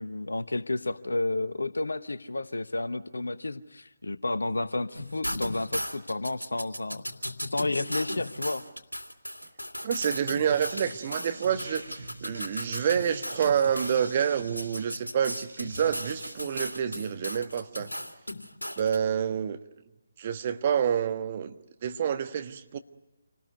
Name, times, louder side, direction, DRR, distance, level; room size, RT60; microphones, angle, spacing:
voice 1, 0.0-7.0 7.5-8.6, left 2 dB, 65° left, 13 dB, 0.9 m, -31 dB
sound 1, 4.9-14.0 14.6-19.0, equal, 90° left, 2.5 m, -36 dB
voice 2, 9.8-17.9 18.8-19.6 20.2-21.6 21.8-22.8, right 8 dB, 30° right, 8 dB, 1.3 m, -28 dB
sound 2, 10.5-16.4, right 1 dB, 75° right, 4.1 m, -44 dB
28.0 x 19.5 x 9.5 m, 1.0 s
figure-of-eight pair, 145°, 0 cm